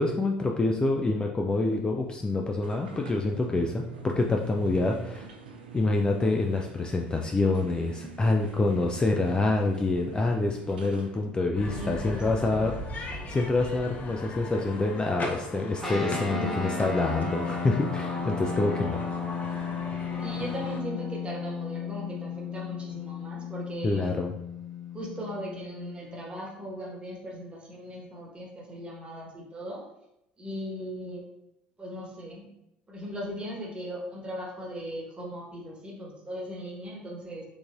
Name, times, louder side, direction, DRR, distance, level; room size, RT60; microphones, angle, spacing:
voice 1, 0.0-5.2 5.7-12.7 13.0-19.0 23.8-24.3, left 2 dB, 15° left, 1 dB, 0.4 m, -27 dB
sound 1, 2.6-11.2, right 6 dB, 75° right, 0.5 m, -44 dB
sound 2, 11.5-20.8, left 2 dB, 35° left, 1.0 m, -39 dB
voice 2, 11.6-12.8 16.1-16.6 20.2-24.2 24.9-29.8 30.4-31.3 31.8-32.5 32.9-37.4, equal, 20° right, -2 dB, 1.3 m, -38 dB
sound 3, 15.8-26.5, left 5 dB, ahead, 1.0 m, -34 dB
4.6 x 3.7 x 2.5 m, 0.84 s
figure-of-eight pair, 65°, 5 cm